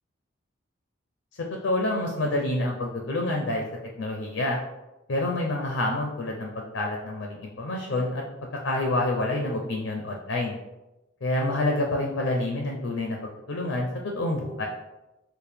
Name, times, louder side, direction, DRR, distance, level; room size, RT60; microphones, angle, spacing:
voice 1, 1.6-3.6 4.0-4.6 5.1-8.2 8.6-10.6 11.2-13.2 13.5-14.7, left 2 dB, 75° left, 1 dB, 0.5 m, -27 dB
4.5 x 2.1 x 3.4 m, 1.0 s
head